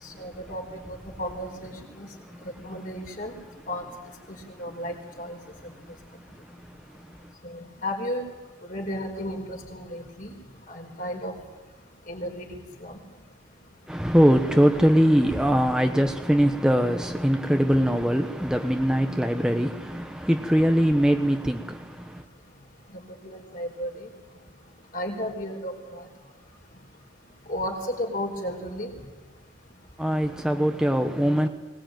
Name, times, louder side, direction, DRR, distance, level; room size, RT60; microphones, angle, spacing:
voice 1, 0.2-0.6 1.2-2.1 2.4-3.3 3.7-3.8 4.6-5.4 7.4-8.2 8.6-10.3 10.7-11.3 12.1-13.0 22.9-24.1 24.9-26.1 27.5-28.9, equal, 45° left, 4.7 m, -33 dB
voice 2, 2.1-2.5 6.1-7.3 13.9-22.2 30.0-31.5, equal, 5° right, 0.9 m, -22 dB
22.5 x 19.5 x 9.1 m
head